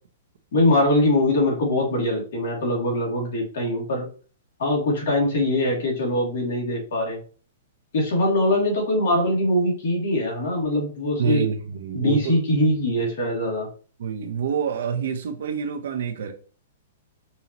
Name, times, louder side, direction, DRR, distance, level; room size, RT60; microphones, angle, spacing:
voice 1, 0.5-4.1 4.6-7.2 7.9-11.4 11.9-13.7, left 1 dB, 65° left, 2.4 m, -22 dB
voice 2, 11.2-12.4 14.0-16.3, right 7 dB, 70° right, 0.8 m, -27 dB
5.5 x 2.8 x 2.9 m
hypercardioid pair, 150°, 0 cm